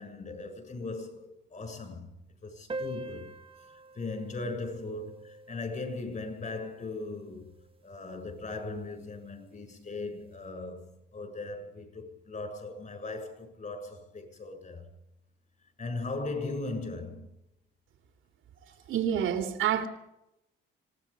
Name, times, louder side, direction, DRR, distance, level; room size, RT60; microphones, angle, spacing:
voice 1, 0.0-2.1 2.4-3.3 3.7-7.5 7.8-14.8 15.8-17.3, left 3 dB, 40° left, 7.3 m, -38 dB
sound 1, 2.7-7.7, right 2 dB, 25° right, 1.3 m, -44 dB
voice 2, 18.9-19.9, right 9 dB, 85° right, 2.8 m, -27 dB
26.5 x 18.5 x 5.3 m
cardioid pair, 90°, 20 cm